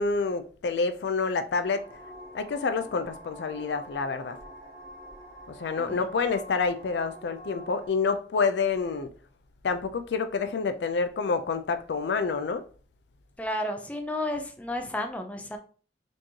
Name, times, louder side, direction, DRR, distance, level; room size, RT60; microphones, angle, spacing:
voice 1, 0.0-1.9 2.3-4.4 5.5-9.1 9.6-12.6, left 4 dB, 75° left, 0.4 m, -28 dB
sound 1, 1.6-7.9, right 1 dB, 15° right, 1.4 m, -46 dB
voice 2, 13.4-15.6, left 1 dB, 10° left, 0.4 m, -32 dB
4.3 x 3.0 x 2.8 m
head